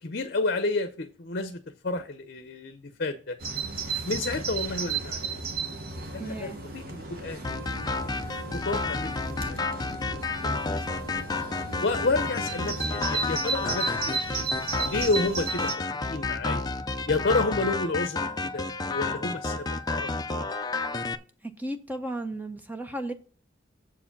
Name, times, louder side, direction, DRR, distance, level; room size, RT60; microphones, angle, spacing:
voice 1, 0.0-3.4 4.0-5.4 6.1-7.8 8.0-8.1 8.5-9.6 10.1-10.2 10.7-10.8 11.1-11.2 11.8-14.5 14.8-15.7 16.0-16.6 17.1-18.3 18.5-20.1, left 3 dB, 55° left, 0.7 m, -30 dB
Bird vocalization bird call bird song, 3.4-15.7, right 4 dB, 50° right, 1.2 m, -34 dB
voice 2, 6.2-6.6 21.6-23.1, right 1 dB, 10° right, 0.7 m, -34 dB
sound 1, 7.4-21.2, left 3 dB, 20° left, 0.5 m, -31 dB
7.3 x 4.8 x 7.1 m
head